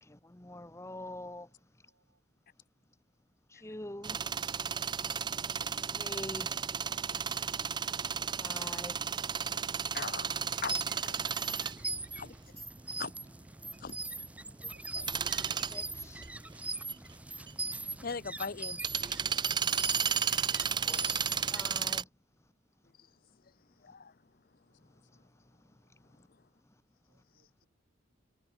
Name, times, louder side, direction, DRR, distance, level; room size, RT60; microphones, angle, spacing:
voice 1, 0.0-1.5 3.5-4.2 5.9-6.5 8.4-9.0 15.7-16.2 20.8-22.1, left 1 dB, 15° left, 1.3 m, -45 dB
voice 2, 1.3-2.2 14.7-14.8 27.1-27.7, right 3 dB, 80° right, 3.0 m, -74 dB
sound 1, 4.0-22.0, right 7 dB, 25° right, 0.5 m, -34 dB
voice 3, 9.9-10.8 12.2-12.4 13.0-13.1 13.8-14.0 14.6-15.0 18.0-18.8 23.8-24.1, left 5 dB, 50° left, 0.7 m, -40 dB
sound 2, 10.5-21.8, right 3 dB, 5° right, 0.9 m, -41 dB
voice 4, 10.9-11.9 13.8-13.9, left 3 dB, 65° left, 3.5 m, -63 dB
head